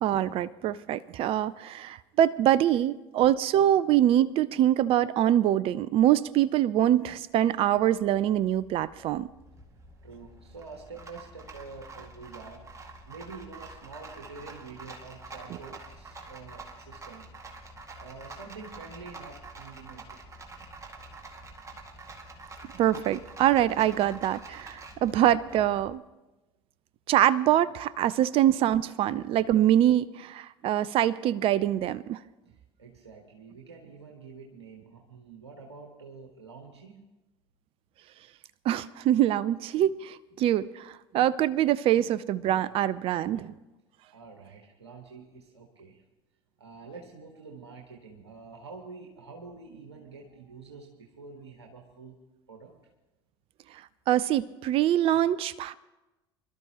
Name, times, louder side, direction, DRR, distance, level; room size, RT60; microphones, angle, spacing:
voice 1, 0.0-9.3 22.8-26.0 27.1-32.2 38.6-43.5 54.1-55.7, right 12 dB, 45° right, 19 dB, 0.5 m, -24 dB
Rattle, 7.3-25.9, right 3 dB, 20° right, 2.0 m, -47 dB
voice 2, 10.0-12.6 13.0-17.3 17.9-20.4 32.8-37.0 44.1-46.0 46.6-52.2 52.5-52.7, right 4 dB, 80° right, 1 dB, 1.4 m, -47 dB
25.5 x 12.0 x 3.0 m, 1.0 s
figure-of-eight pair, 65°, 14 cm